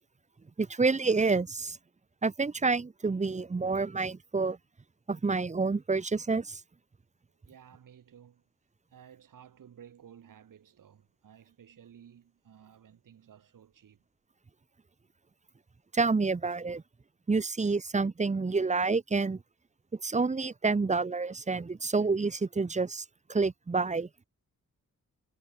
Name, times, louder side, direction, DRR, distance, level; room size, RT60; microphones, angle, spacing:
voice 1, 0.6-1.8 2.2-4.6 5.1-6.6 15.9-16.8 17.3-19.4 20.0-24.1, right 4 dB, 20° right, 0.9 m, -28 dB
voice 2, 7.5-8.5 8.9-14.1, right 9 dB, 80° right, 7.4 m, -55 dB
cardioid pair, 100°, 32 cm